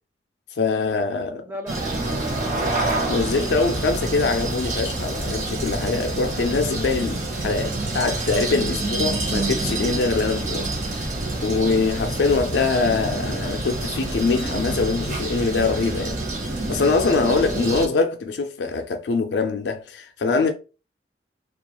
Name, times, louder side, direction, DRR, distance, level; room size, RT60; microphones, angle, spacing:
voice 1, 0.6-1.5 3.1-11.1 11.4-16.2 16.7-20.5, left 4 dB, 75° left, 0.4 m, -23 dB
voice 2, 1.4-2.8, equal, 10° right, 0.3 m, -38 dB
sound 1, 1.7-17.9, right 2 dB, 45° right, 0.7 m, -27 dB
2.4 x 2.2 x 2.9 m
head